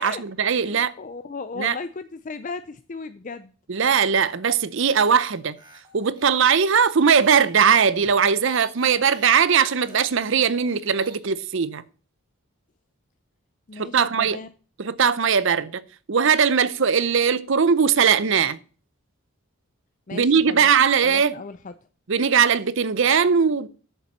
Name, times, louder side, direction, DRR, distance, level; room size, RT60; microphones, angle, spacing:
voice 1, 0.0-0.9 1.6-1.8 3.7-5.6 5.9-11.8 13.8-14.4 14.8-15.8 16.1-18.6 20.1-21.3 22.1-23.7, right 6 dB, 55° right, 0.6 m, -20 dB
voice 2, 0.6-3.5 13.7-14.5 20.1-20.7 21.0-21.7, left 4 dB, 35° left, 0.4 m, -36 dB
sound 1, 4.9-11.2, right 2 dB, 20° right, 2.2 m, -49 dB
7.2 x 6.8 x 7.4 m
head